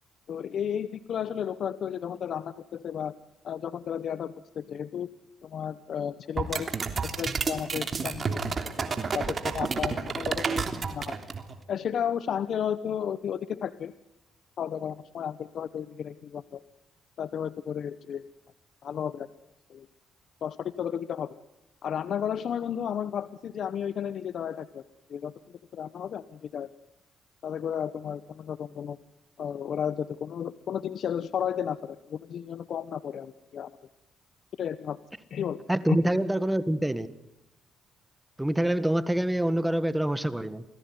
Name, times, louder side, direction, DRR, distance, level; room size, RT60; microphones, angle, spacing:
voice 1, 0.3-3.1 3.4-5.1 5.4-6.8 7.2-8.4 8.8-11.2 11.7-13.9 14.6-16.6 17.2-18.3 18.8-19.3 19.7-19.9 20.4-21.3 21.8-24.8 25.1-26.7 27.4-29.0 29.4-33.7 34.6-35.0 35.3-36.0, left 8 dB, 60° left, 14 dB, 1.0 m, -33 dB
sound 1, 6.4-11.5, right 5 dB, 40° right, 3.2 m, -30 dB
voice 2, 35.7-37.1 38.4-40.6, right 1 dB, 5° right, 14 dB, 1.6 m, -26 dB
28.5 x 19.0 x 9.6 m, 0.84 s
cardioid pair, 90°, 0 cm